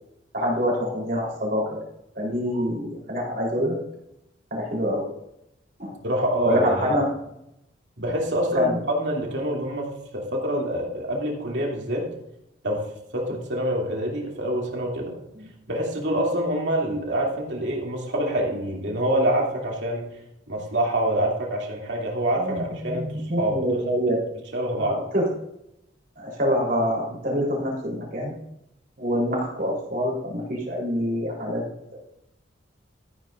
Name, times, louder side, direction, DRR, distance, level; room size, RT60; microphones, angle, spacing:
voice 1, 0.3-1.8 2.1-3.8 4.5-5.0 5.8-6.0 6.4-7.1 8.5-8.8 22.4-24.2 24.8-25.3 26.2-28.3 29.0-31.6, equal, 45° right, -2 dB, 3.7 m, -26 dB
voice 2, 6.0-7.0 8.0-12.1 12.6-12.8 13.1-15.1 15.7-20.1 20.5-23.8 24.5-25.0, right 1 dB, 65° right, -1 dB, 2.6 m, -26 dB
13.5 x 10.0 x 2.5 m, 0.82 s
head